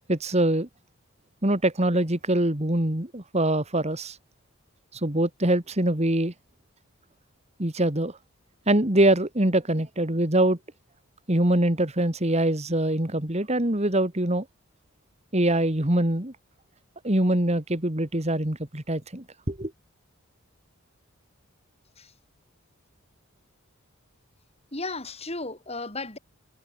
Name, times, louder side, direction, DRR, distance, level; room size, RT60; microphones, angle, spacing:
voice 1, 0.1-0.7 1.4-4.2 4.9-6.3 7.6-8.2 8.7-10.6 11.3-14.5 15.3-16.3 17.0-19.7, right 1 dB, 30° right, 2.3 m, -24 dB
voice 2, 24.7-26.2, left 3 dB, 30° left, 6.3 m, -34 dB
head